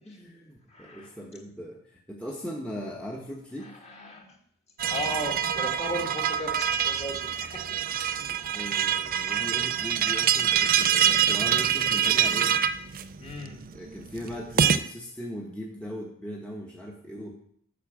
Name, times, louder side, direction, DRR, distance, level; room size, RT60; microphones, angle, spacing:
voice 1, 0.0-3.8 8.5-12.6 13.7-17.4, equal, 5° left, -2 dB, 1.0 m, -39 dB
voice 2, 0.7-1.2 3.6-4.4 4.9-8.3 13.2-13.6, left 1 dB, 30° left, 1 dB, 1.7 m, -37 dB
sound 1, 4.8-14.8, right 9 dB, 40° right, 0.4 m, -25 dB
8.5 x 5.8 x 7.1 m, 0.66 s
head